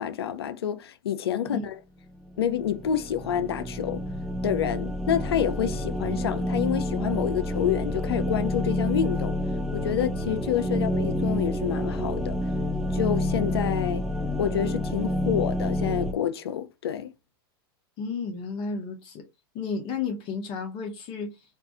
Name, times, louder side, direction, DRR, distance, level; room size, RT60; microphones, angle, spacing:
voice 1, 0.0-1.8 2.4-4.0 4.4-9.4 9.7-12.4 12.9-14.1 14.4-17.1, left 9 dB, 85° left, 0.4 m, -28 dB
sound 1, 2.3-16.1, left 1 dB, ahead, 0.4 m, -28 dB
voice 2, 18.0-19.2 19.5-21.3, left 5 dB, 40° left, 0.6 m, -32 dB
2.6 x 2.4 x 2.4 m
hypercardioid pair, 115°, 13 cm